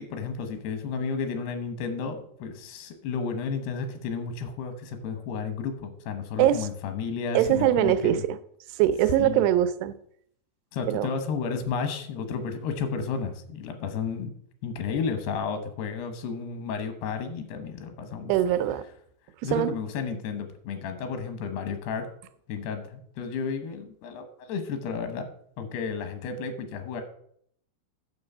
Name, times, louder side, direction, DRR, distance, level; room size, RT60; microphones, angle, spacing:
voice 1, 0.0-8.2 9.2-9.4 10.7-14.3 14.6-18.3 19.4-22.1 22.5-25.3 25.6-27.0, left 5 dB, 80° left, 8 dB, 3.2 m, -32 dB
voice 2, 7.3-8.4 8.8-9.9 10.9-11.1 18.3-18.8 19.4-19.7, right 12 dB, 90° right, 11 dB, 2.7 m, -22 dB
9.5 x 6.7 x 5.5 m, 0.67 s
omnidirectional pair, 4.6 m